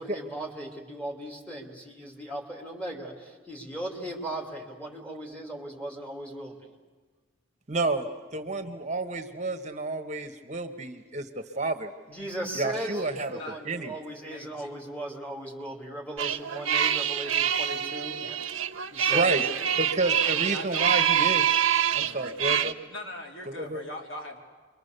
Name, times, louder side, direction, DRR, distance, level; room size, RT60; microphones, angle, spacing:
voice 1, 0.0-6.7 12.1-18.4 18.9-19.6, right 1 dB, 5° left, -1 dB, 3.0 m, -38 dB
voice 2, 7.7-8.1 8.3-11.3 11.6-11.9 12.5-13.4 13.6-13.9 19.1-19.4 19.8-21.6 21.9-22.8 23.5-23.8, right 2 dB, 35° right, 7 dB, 1.2 m, -30 dB
voice 3, 14.3-14.7 19.1-19.8 20.2-20.9 21.6-22.6 22.9-24.4, left 1 dB, 75° left, 0 dB, 3.4 m, -41 dB
sound 1, 16.2-22.7, right 9 dB, 90° right, 0.9 m, -26 dB
28.5 x 23.5 x 6.8 m, 1.4 s
head